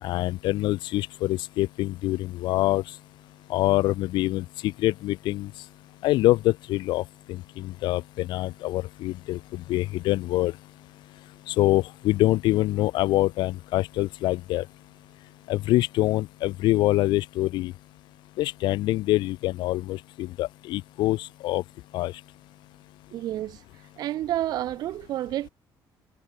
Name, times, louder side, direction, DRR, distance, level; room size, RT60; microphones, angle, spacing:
voice 1, 0.0-3.0 3.5-5.6 6.0-10.6 11.5-14.7 15.5-17.7 18.4-21.6 21.9-22.2, left 17 dB, 70° left, 1.3 m, -25 dB
voice 2, 23.1-23.6 24.0-25.5, right 13 dB, 55° right, 1.5 m, -29 dB
cardioid pair, 165°, 8 cm